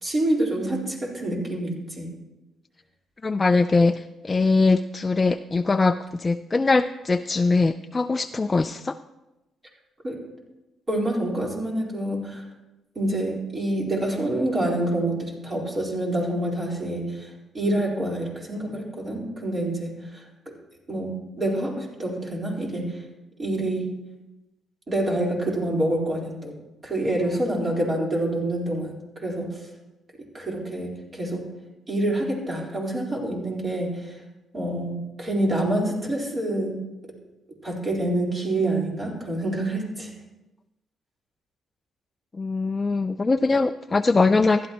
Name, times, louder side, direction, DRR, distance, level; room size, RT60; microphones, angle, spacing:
voice 1, 0.0-2.1 10.0-10.2 10.9-12.4 12.9-20.2 20.9-23.0 23.4-23.9 24.9-26.5 26.8-29.6 30.3-31.4 31.9-34.1 34.5-36.8 37.6-40.1, right 1 dB, 40° right, -3 dB, 4.2 m, -27 dB
voice 2, 3.2-3.9 4.2-8.9 42.4-44.7, left 3 dB, 30° left, 9 dB, 0.4 m, -21 dB
15.5 x 11.0 x 3.0 m, 1.0 s
supercardioid pair, 55°, 0 cm